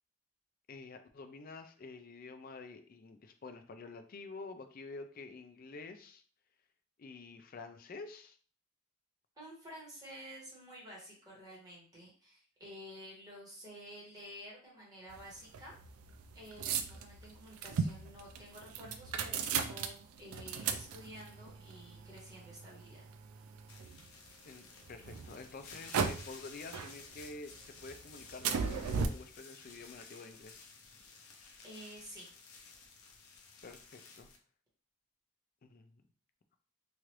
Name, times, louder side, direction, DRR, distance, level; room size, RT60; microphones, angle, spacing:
voice 1, 0.7-6.2 7.0-8.4 24.4-30.7 33.6-34.3 35.6-36.0, left 3 dB, 40° left, 8 dB, 0.4 m, -49 dB
voice 2, 9.4-15.8 16.3-23.0 31.6-32.3, equal, 20° right, -5 dB, 1.2 m, -51 dB
sound 1, 15.1-24.3 24.8-26.4 26.7-27.5 27.8-29.1, right 6 dB, 90° right, 0.4 m, -37 dB
sound 2, 23.7-34.4, left 4 dB, 90° left, 0.6 m, -54 dB
3.1 x 2.5 x 3.0 m, 0.42 s
head